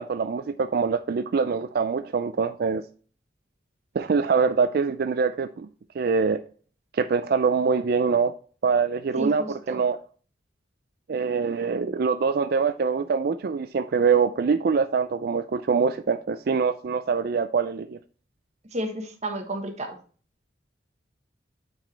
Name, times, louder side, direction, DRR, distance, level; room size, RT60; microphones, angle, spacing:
voice 1, 0.0-2.8 3.9-5.7 6.0-6.4 6.9-8.3 8.6-10.0 11.1-18.0, right 5 dB, 55° right, 0.4 m, -24 dB
voice 2, 9.2-9.8 18.7-20.0, right 1 dB, 40° right, 1.3 m, -32 dB
8.9 x 5.0 x 3.2 m
head